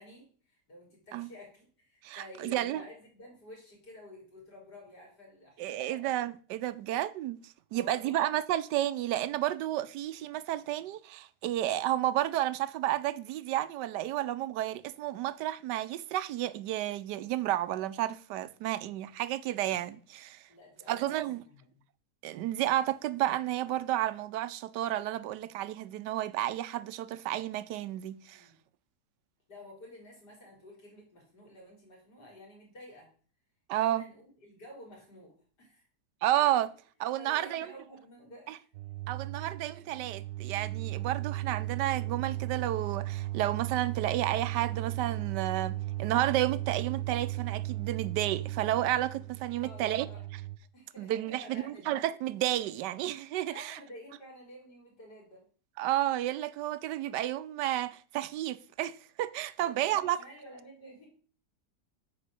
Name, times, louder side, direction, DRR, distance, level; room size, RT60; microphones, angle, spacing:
voice 1, 0.0-6.0 7.7-8.2 20.5-21.8 28.3-28.5 29.5-33.1 33.8-35.8 37.2-38.6 39.3-39.5 49.6-50.2 50.7-52.0 53.5-55.4 59.6-61.1, left 1 dB, 75° left, 4.5 m, -51 dB
voice 2, 2.0-2.8 5.6-20.4 20.9-21.4 22.2-28.5 33.7-34.0 36.2-36.7 37.0-37.7 38.5-38.6 39.1-50.1 51.0-53.8 55.8-60.2, right 13 dB, 90° right, 1.2 m, -31 dB
sound 1, 38.7-50.6, right 16 dB, 70° right, 1.1 m, -36 dB
8.5 x 4.8 x 6.6 m
omnidirectional pair, 1.8 m